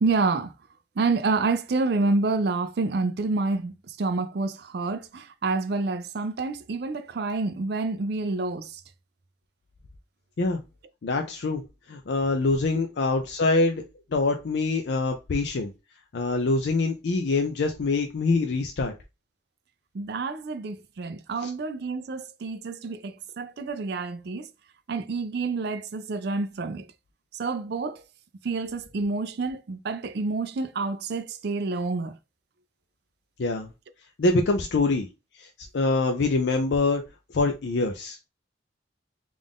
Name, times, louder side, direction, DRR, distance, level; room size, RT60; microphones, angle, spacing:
voice 1, 0.0-0.5 1.0-8.8 19.9-24.5 24.9-26.9 27.3-28.0 28.4-32.2, right 3 dB, 60° right, 0.4 m, -28 dB
voice 2, 11.0-11.6 11.9-13.8 14.1-15.7 16.1-18.9 21.4-21.5 33.4-33.7 34.2-35.1 35.4-35.5 35.7-37.0 37.3-38.2, left 3 dB, 65° left, 0.5 m, -24 dB
3.7 x 2.5 x 3.5 m
head